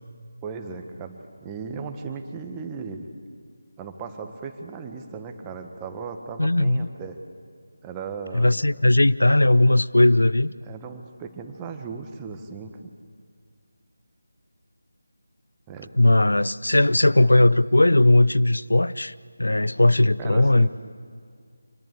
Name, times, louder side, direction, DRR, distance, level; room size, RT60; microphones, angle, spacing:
voice 1, 0.4-3.1 3.8-7.2 7.8-8.5 10.6-12.9 15.7-15.9 20.2-20.7, right 5 dB, 15° right, 5 dB, 1.4 m, -36 dB
voice 2, 6.4-6.9 8.3-10.5 16.0-19.1 19.4-20.7, left 1 dB, 75° left, 18 dB, 0.5 m, -18 dB
26.0 x 20.0 x 8.3 m, 2.1 s
figure-of-eight pair, 160°, 0 cm